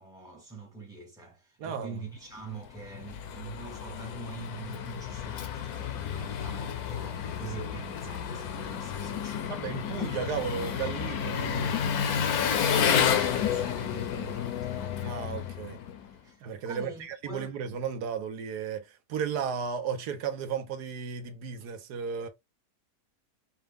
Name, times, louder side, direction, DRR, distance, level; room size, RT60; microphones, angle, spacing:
voice 1, 0.0-9.5 12.7-15.0 16.2-17.6, right 3 dB, 5° right, 0.4 m, -44 dB
voice 2, 1.6-2.0 9.5-11.7 15.0-15.8 16.4-22.3, right 6 dB, 75° right, 1.3 m, -34 dB
Engine, 2.6-16.1, left 8 dB, 70° left, 1.1 m, -31 dB
4.9 x 2.1 x 3.5 m
omnidirectional pair, 1.8 m